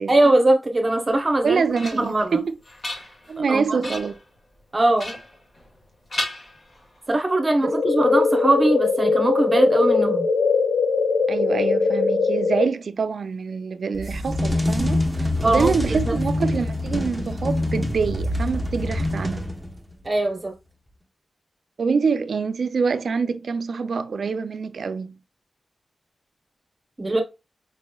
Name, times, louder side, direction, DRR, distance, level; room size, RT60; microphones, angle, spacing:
voice 1, 0.1-1.6 1.9-2.4 3.5-3.9 4.7-5.2 7.1-10.3 15.4-15.7 16.0-16.2 20.0-20.5 27.0-27.2, right 2 dB, 30° right, 0.8 m, -20 dB
sound 1, 1.2-2.2 2.6-3.4 3.8-4.2 5.0-5.8 6.1-7.1, left 1 dB, 45° left, 1.3 m, -34 dB
voice 2, 1.4-2.5 3.3-4.2 7.6-7.8 11.3-19.5 21.8-25.2, right 5 dB, 80° right, 0.3 m, -25 dB
sound 2, 7.6-12.6, left 4 dB, 80° left, 0.6 m, -21 dB
sound 3, 13.9-19.9, left 1 dB, ahead, 0.9 m, -25 dB
5.1 x 3.0 x 2.2 m
wide cardioid pair, 100°, 0 cm